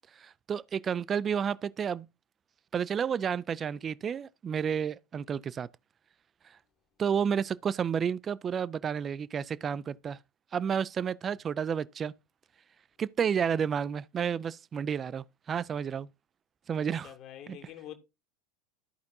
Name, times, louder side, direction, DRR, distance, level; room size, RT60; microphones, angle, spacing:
voice 1, 0.2-2.1 2.7-5.7 7.0-10.2 10.5-12.1 13.0-16.1 16.7-17.1 17.5-17.6, right 7 dB, 25° right, 0.3 m, -31 dB
voice 2, 17.0-18.0, left 11 dB, 45° left, 1.3 m, -45 dB
14.0 x 5.1 x 2.7 m
figure-of-eight pair, 80°, 0 cm